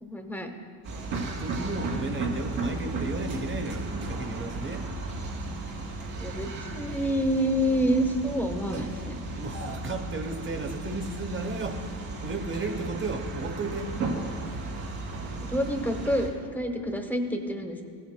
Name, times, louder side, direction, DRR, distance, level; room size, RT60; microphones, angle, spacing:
voice 1, 0.0-0.5 6.2-9.2 15.5-17.8, equal, 5° left, 5 dB, 0.9 m, -28 dB
sound 1, 0.8-16.3, right 3 dB, 80° right, 2.4 m, -35 dB
voice 2, 1.1-4.8 9.4-11.9 12.2-13.9, right 2 dB, 25° right, 5 dB, 1.1 m, -34 dB
15.5 x 8.4 x 2.2 m, 2.4 s
supercardioid pair, 85°, 47 cm